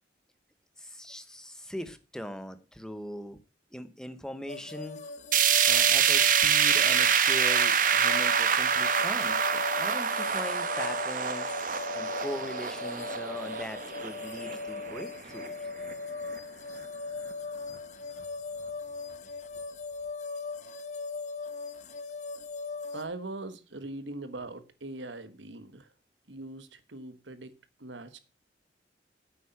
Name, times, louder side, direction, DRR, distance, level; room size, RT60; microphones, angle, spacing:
voice 1, 0.8-3.4 3.7-5.0 5.7-11.5 11.9-15.5, equal, 5° left, 0.9 m, -40 dB
sound 1, 4.5-23.0, left 4 dB, 40° left, 1.1 m, -39 dB
sound 2, 5.3-15.5 15.9-16.0 16.4-16.5 17.3-17.4, right 7 dB, 45° right, 1.1 m, -26 dB
voice 2, 22.9-25.9 26.3-27.5 27.8-28.2, right 2 dB, 85° right, 1.3 m, -41 dB
9.3 x 8.5 x 5.7 m
head